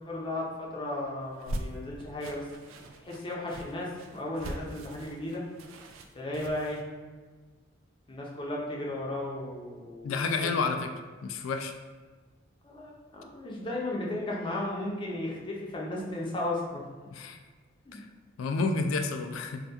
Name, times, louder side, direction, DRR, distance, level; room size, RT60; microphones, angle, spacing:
voice 1, 0.0-2.5 3.0-5.4 6.1-6.8 8.1-10.2 10.6-10.8 12.6-16.8 17.9-18.0, left 1 dB, 25° left, -3 dB, 0.6 m, -35 dB
sound 1, 1.2-6.8, right 1 dB, 85° right, 0.3 m, -41 dB
voice 2, 10.0-10.9 11.2-11.7 17.1-17.4 17.9-18.0 18.4-19.6, left 4 dB, 75° left, 6 dB, 0.3 m, -30 dB
2.8 x 2.3 x 3.4 m, 1.4 s
head